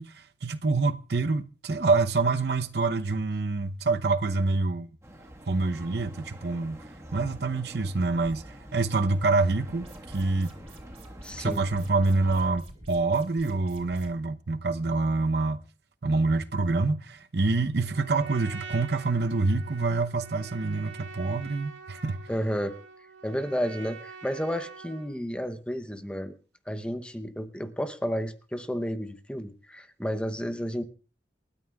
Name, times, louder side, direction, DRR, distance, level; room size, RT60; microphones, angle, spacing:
voice 1, 0.0-4.9 5.5-6.8 7.1-10.5 11.4-15.6 16.0-22.2, right 3 dB, 60° right, 0.7 m, -26 dB
sound 1, 5.0-12.5, right 1 dB, 15° right, 1.5 m, -46 dB
sound 2, 9.7-14.1, right 1 dB, 35° right, 4.4 m, -49 dB
voice 2, 11.2-11.6 22.3-22.7 23.2-26.3 26.7-30.8, equal, 5° left, 0.8 m, -31 dB
Trumpet, 17.8-25.1, right 4 dB, 80° right, 2.1 m, -45 dB
28.5 x 13.0 x 2.3 m
head